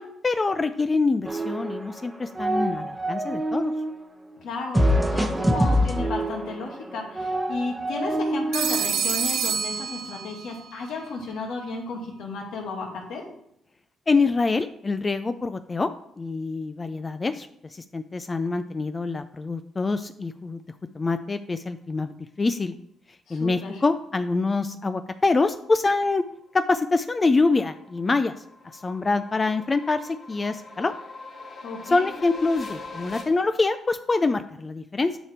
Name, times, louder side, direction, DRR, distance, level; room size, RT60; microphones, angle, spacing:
voice 1, 0.0-3.7 14.1-15.9 16.2-20.6 20.9-22.7 23.3-26.2 26.5-28.3 28.7-30.9 31.8-35.2, left 3 dB, 25° left, 10 dB, 0.4 m, -25 dB
sound 1, 1.3-2.0 2.3-3.9 4.7-8.8, equal, 10° right, 0.9 m, -25 dB
voice 2, 4.4-13.2 23.3-23.8 31.6-32.1, left 3 dB, 80° left, 0 dB, 2.1 m, -33 dB
Telephone, 8.5-10.6, right 7 dB, 75° right, 0.7 m, -27 dB
sound 2, 26.6-33.2, left 3 dB, 55° left, 2.3 m, -42 dB
8.9 x 5.0 x 4.5 m, 0.71 s
cardioid pair, 90°, 0 cm